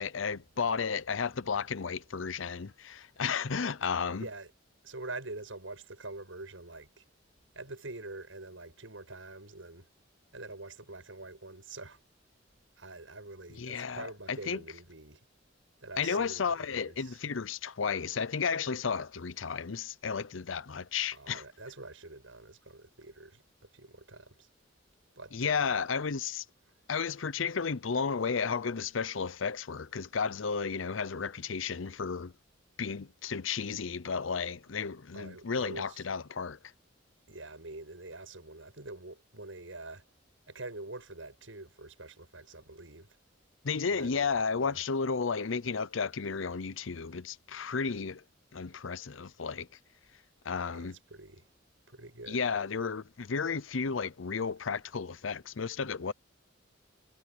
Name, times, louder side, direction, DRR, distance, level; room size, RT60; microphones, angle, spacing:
voice 1, 0.0-4.3 13.6-14.6 16.0-21.4 25.3-26.4 26.9-32.3 32.8-36.6 43.6-48.2 48.5-49.7 50.4-51.0 52.3-56.1, left 5 dB, 80° left, 0.7 m, -33 dB
voice 2, 4.1-4.5 4.8-7.0 7.5-9.9 10.3-12.0 12.8-15.2 15.8-17.2 21.1-24.5 25.2-25.8 35.1-36.0 37.3-40.0 40.5-43.1 43.9-44.3 44.6-44.8 50.7-51.5 51.9-52.4, right 2 dB, 85° right, 7.5 m, -45 dB
head